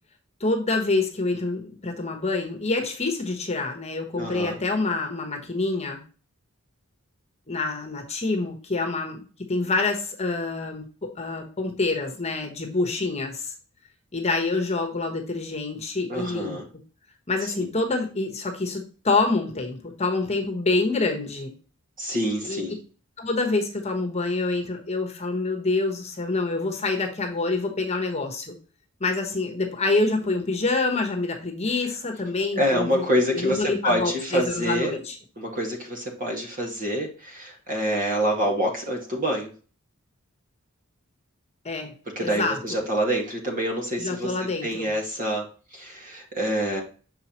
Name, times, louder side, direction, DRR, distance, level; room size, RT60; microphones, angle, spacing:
voice 1, 0.4-6.0 7.5-9.2 9.5-10.8 11.2-13.5 14.1-16.6 17.3-21.5 22.4-22.6 23.2-28.5 29.0-33.0 33.3-35.2 41.6-42.8 44.0-44.9, left 3 dB, 30° left, 2 dB, 1.2 m, -26 dB
voice 2, 4.1-4.6 16.1-16.7 17.4-17.7 22.0-22.8 32.6-35.0 35.4-39.5 42.2-45.5 45.7-46.8, equal, 40° right, 1 dB, 1.9 m, -26 dB
6.7 x 4.7 x 3.0 m, 0.38 s
head